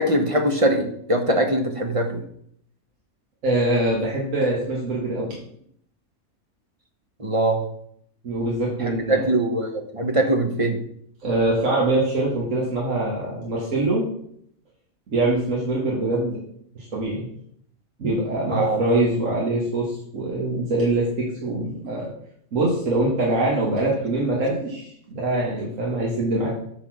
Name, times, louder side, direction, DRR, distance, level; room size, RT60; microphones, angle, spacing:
voice 1, 0.0-2.2 7.2-7.7 8.8-10.8 18.5-18.8, right 1 dB, 25° right, 5 dB, 0.9 m, -22 dB
voice 2, 3.4-5.4 8.2-9.3 11.2-14.1 15.1-16.4 16.8-17.3 18.0-22.1 22.5-26.5, right 2 dB, 60° right, -4 dB, 2.0 m, -23 dB
9.1 x 4.1 x 6.2 m, 0.67 s
omnidirectional pair, 1.5 m